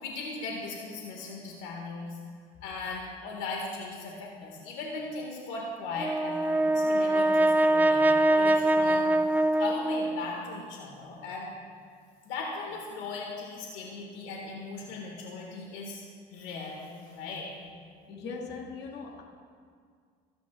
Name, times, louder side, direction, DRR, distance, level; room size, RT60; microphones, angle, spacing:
voice 1, 0.0-2.2 2.6-9.1 9.6-11.5 12.2-16.0 16.3-17.5, left 3 dB, 80° left, -1 dB, 1.9 m, -38 dB
Brass instrument, 6.0-10.4, right 1 dB, 10° right, 0.4 m, -24 dB
voice 2, 18.1-19.2, left 4 dB, 65° left, -1 dB, 2.0 m, -39 dB
22.0 x 10.0 x 2.5 m, 2.1 s
supercardioid pair, 90°, 19 cm